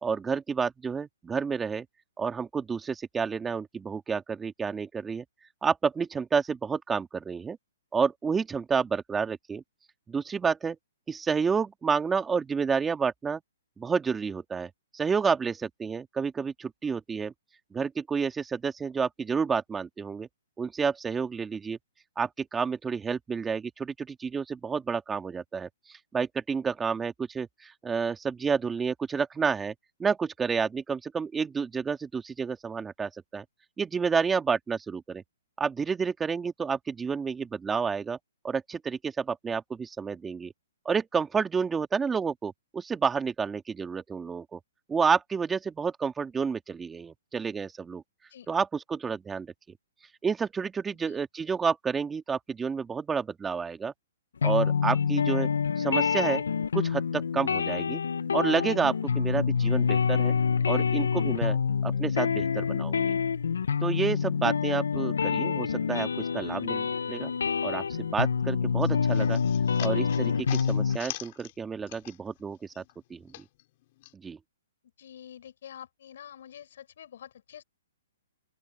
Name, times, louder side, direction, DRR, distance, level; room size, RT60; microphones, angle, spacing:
voice 1, 0.0-1.9 2.2-5.2 5.6-7.6 7.9-9.6 10.1-10.8 11.1-13.4 13.8-17.3 17.7-20.3 20.6-21.8 22.2-29.7 30.0-33.4 33.8-35.2 35.6-38.2 38.4-40.5 40.9-44.6 44.9-48.0 48.5-49.5 50.2-53.9 54.4-55.5 55.8-56.4 56.7-58.0 58.3-60.3 60.7-61.6 61.8-63.1 63.8-67.3 67.6-67.8 68.1-69.4 69.8-72.8 73.1-73.2 74.2-74.4, right 5 dB, 10° right, 2.0 m, -30 dB
sound 1, 54.4-71.0, left 6 dB, 80° left, 1.0 m, -27 dB
sound 2, 68.8-72.4 72.7-74.1, left 18 dB, 45° left, 6.2 m, -43 dB
voice 2, 75.0-77.6, left 9 dB, 60° left, 7.0 m, -47 dB
open air
hypercardioid pair, 140°, 0 cm